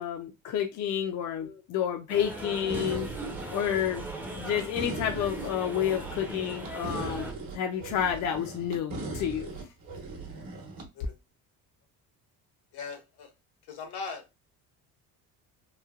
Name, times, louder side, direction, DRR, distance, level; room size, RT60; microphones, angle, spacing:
voice 1, 0.0-3.1 3.5-4.0 4.3-9.5, left 9 dB, 50° left, 4 dB, 0.4 m, -30 dB
sound 1, 2.1-7.3, right 1 dB, 5° right, 0.5 m, -39 dB
sound 2, 2.7-10.9, right 2 dB, 65° right, 1.0 m, -39 dB
voice 2, 12.7-13.3 13.7-14.2, left 4 dB, 75° left, 5 dB, 0.9 m, -40 dB
3.1 x 2.0 x 2.3 m, 0.24 s
cardioid pair, 120°, 37 cm